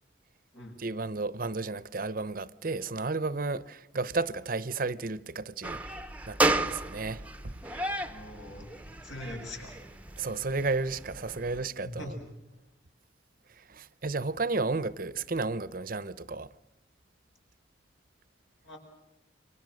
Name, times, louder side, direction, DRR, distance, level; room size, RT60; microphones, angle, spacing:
voice 1, 0.8-5.8 6.3-8.0 10.2-12.1 13.6-16.5, right 3 dB, 45° right, 0.8 m, -33 dB
sound 1, 5.6-11.7, right 2 dB, 5° right, 0.8 m, -33 dB
voice 2, 8.1-8.7 9.0-9.7 11.8-12.1 18.6-18.8, left 1 dB, 80° left, 7.9 m, -42 dB
30.0 x 24.5 x 6.5 m
head